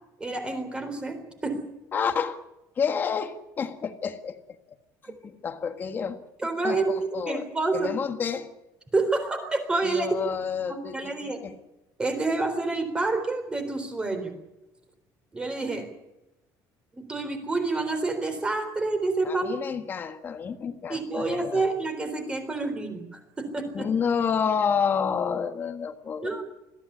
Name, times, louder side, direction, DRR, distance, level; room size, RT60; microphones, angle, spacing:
voice 1, 0.2-1.6 6.4-7.9 8.9-10.2 10.7-11.4 12.0-14.3 15.3-15.9 16.9-19.6 20.9-23.9 26.2-26.4, right 3 dB, 15° right, 7 dB, 3.9 m, -28 dB
voice 2, 1.9-2.4 2.7-4.8 5.0-6.2 6.6-8.5 9.8-11.6 19.2-21.7 23.7-26.4, left 6 dB, 25° left, 8 dB, 1.5 m, -29 dB
21.5 x 15.0 x 9.9 m, 0.97 s
cardioid pair, 170°, 7 cm